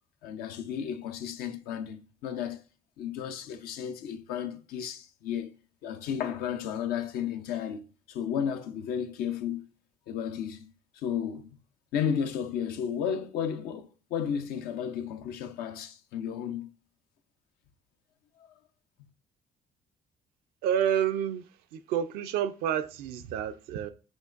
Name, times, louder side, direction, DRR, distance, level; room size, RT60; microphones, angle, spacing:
voice 1, 0.2-2.6 3.0-5.5 5.8-9.7 10.1-10.7 10.9-11.6 11.9-16.7, left 8 dB, 75° left, 0.5 m, -33 dB
voice 2, 20.6-23.9, right 9 dB, 80° right, 0.4 m, -29 dB
5.2 x 3.0 x 2.4 m
supercardioid pair, 65°, 16 cm